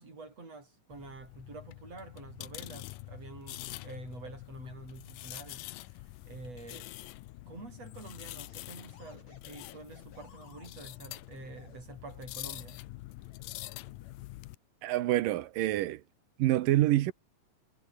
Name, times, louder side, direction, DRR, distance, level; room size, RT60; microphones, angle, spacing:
voice 1, 0.0-6.9 7.5-12.8, right 3 dB, 45° right, 8.3 m, -48 dB
sound 1, 0.9-14.6, left 18 dB, 75° left, 2.3 m, -46 dB
sound 2, 8.5-11.8 12.8-14.5 15.1-15.5, left 6 dB, 50° left, 4.7 m, -59 dB
voice 2, 14.8-16.0 16.4-17.1, right 15 dB, 75° right, 2.6 m, -26 dB
omnidirectional pair, 4.1 m